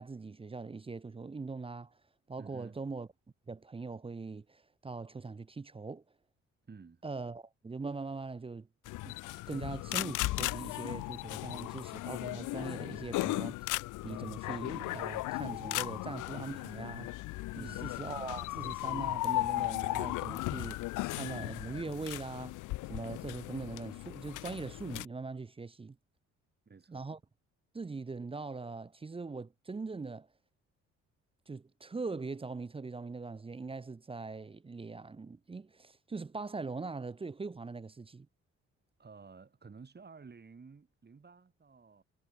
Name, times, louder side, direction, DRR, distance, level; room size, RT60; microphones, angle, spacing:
voice 1, 0.0-1.9 2.3-3.1 3.5-6.0 7.0-8.7 9.0-9.1 9.5-13.7 14.0-17.1 17.6-22.6 22.9-26.0 26.9-27.2 27.7-30.3 31.5-38.3, right 4 dB, 20° right, 0.6 m, -41 dB
voice 2, 2.4-2.8 6.7-7.1 17.5-17.9 26.7-27.1 39.0-42.0, right 5 dB, 35° right, 7.8 m, -52 dB
sound 1, 8.9-25.0, left 19 dB, 85° left, 0.5 m, -36 dB
cardioid pair, 90°, 30 cm